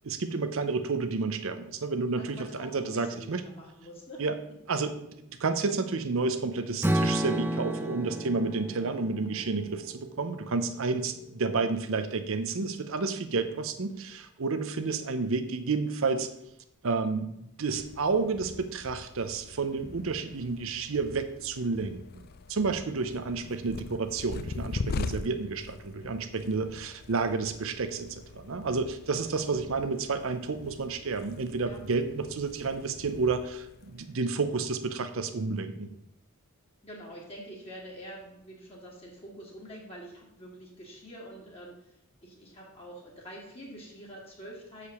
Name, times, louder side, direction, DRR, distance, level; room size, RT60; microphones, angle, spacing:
voice 1, 0.0-3.4 4.2-4.4 4.7-5.1 5.4-16.3 16.8-17.3 17.6-22.2 22.5-35.9, right 4 dB, 65° right, 9 dB, 0.6 m, -30 dB
voice 2, 2.2-4.2 22.8-23.0 29.3-29.5 31.6-31.8 36.8-41.9 42.2-44.9, equal, 25° left, -3 dB, 1.9 m, -46 dB
Strum, 6.8-11.0, right 1 dB, 10° right, 0.6 m, -32 dB
sound 1, 17.7-35.2, left 3 dB, 45° left, 0.4 m, -42 dB
6.6 x 4.9 x 6.9 m, 0.79 s
head